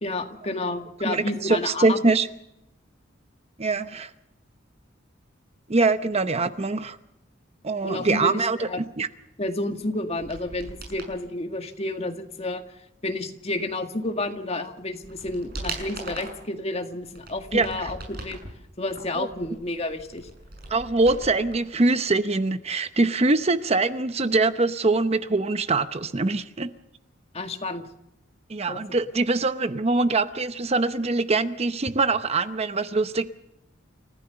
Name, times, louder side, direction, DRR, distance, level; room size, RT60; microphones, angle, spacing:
voice 1, 0.0-2.0 7.8-8.8 9.4-12.6 13.0-18.4 18.8-20.3 27.3-27.8 28.7-28.8, left 2 dB, 35° left, 6 dB, 2.0 m, -30 dB
voice 2, 1.0-2.3 3.6-4.1 5.7-7.0 7.6-8.7 9.0-9.1 17.5-17.9 19.2-19.3 20.7-26.7 28.5-33.3, right 3 dB, 35° right, 12 dB, 0.8 m, -23 dB
sound 1, 10.1-11.2 14.2-14.3 14.8-16.5 17.0-18.5 18.9-21.6 21.8-21.9, right 2 dB, 50° right, 6.6 m, -39 dB
29.0 x 15.0 x 6.9 m, 0.84 s
head